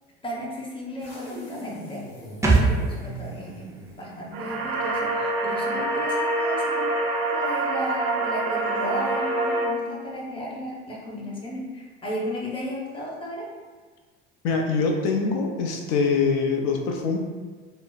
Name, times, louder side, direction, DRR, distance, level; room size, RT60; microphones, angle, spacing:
voice 1, 0.2-2.0 2.5-6.9 7.3-13.5, equal, 15° left, -4 dB, 0.9 m, -34 dB
sound 1, 1.0-5.3, right 1 dB, 80° left, 1.2 m, -42 dB
sound 2, 2.4-5.9 6.2-6.3, right 3 dB, 10° right, 0.4 m, -27 dB
sound 3, 4.3-9.7, right 2 dB, 85° right, 0.5 m, -26 dB
voice 2, 14.4-17.2, left 4 dB, 60° left, 1 dB, 0.6 m, -24 dB
4.0 x 2.0 x 2.4 m, 1.4 s
supercardioid pair, 95°, 30 cm